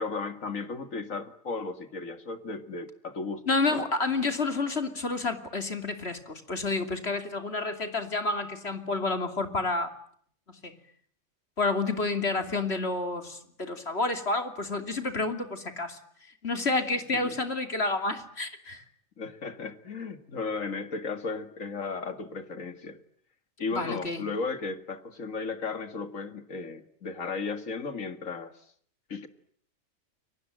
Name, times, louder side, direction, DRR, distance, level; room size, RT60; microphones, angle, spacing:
voice 1, 0.0-3.8 17.1-17.4 19.2-23.0 23.6-28.5 29.1-29.3, left 4 dB, 80° left, 9 dB, 2.5 m, -35 dB
voice 2, 3.5-9.9 10.5-10.7 11.6-16.0 16.4-18.8 23.7-24.2, left 3 dB, 50° left, 7 dB, 3.1 m, -29 dB
29.5 x 24.0 x 7.7 m, 0.62 s
omnidirectional pair, 1.4 m